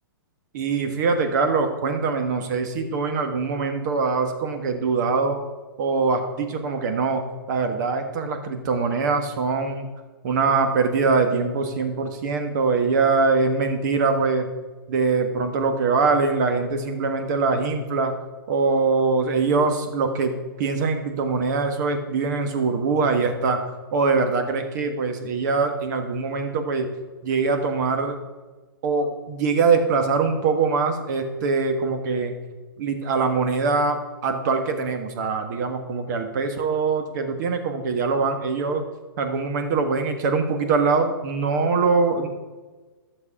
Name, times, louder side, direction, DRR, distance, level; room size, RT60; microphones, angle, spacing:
voice 1, 0.5-5.4 5.8-9.9 10.2-14.5 14.9-18.1 18.5-23.6 23.9-26.9 27.2-28.2 28.8-32.3 32.8-34.0 34.2-38.8 39.2-42.3, right 4 dB, 50° right, 6 dB, 1.5 m, -23 dB
12.0 x 6.6 x 5.0 m, 1.3 s
hypercardioid pair, 145°, 13 cm